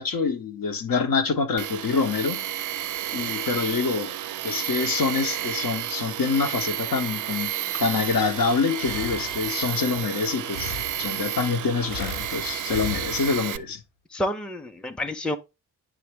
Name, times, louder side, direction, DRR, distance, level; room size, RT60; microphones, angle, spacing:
voice 1, 0.0-2.7 3.1-4.2 4.4-7.5 7.8-10.7 11.0-13.8, left 5 dB, 45° left, 1.1 m, -26 dB
Tools, 1.6-13.6, right 12 dB, 45° right, 0.6 m, -31 dB
Breathing, 7.5-9.8 10.5-11.4 11.9-13.7, left 3 dB, 65° left, 1.3 m, -38 dB
voice 2, 14.1-15.4, left 1 dB, ahead, 0.7 m, -29 dB
9.4 x 3.5 x 3.5 m
hypercardioid pair, 40°, 46 cm